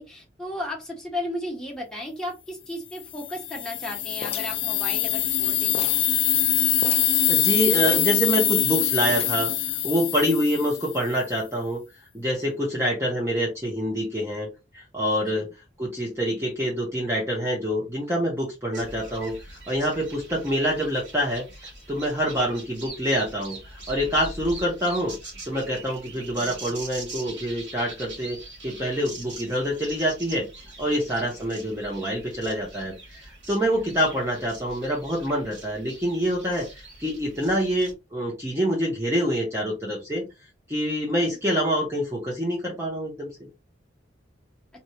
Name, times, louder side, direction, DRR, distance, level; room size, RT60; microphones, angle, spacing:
voice 1, 0.0-5.9 15.2-15.5 31.3-31.5 41.2-41.4, left 1 dB, 5° left, -2 dB, 1.4 m, -35 dB
sound 1, 3.1-11.1, left 12 dB, 80° left, 0.6 m, -24 dB
sound 2, 4.2-5.4 5.7-6.1 6.4-6.5 6.8-7.2 7.8-8.7 9.1-9.6, left 4 dB, 35° left, 0.5 m, -37 dB
voice 2, 7.3-11.8 12.1-14.5 14.7-15.5 15.8-25.2 25.5-40.3 40.7-43.3, equal, 15° right, -2 dB, 0.8 m, -26 dB
sound 3, 18.7-37.9, right 2 dB, 70° right, 2.4 m, -43 dB
4.2 x 3.2 x 2.7 m, 0.25 s
head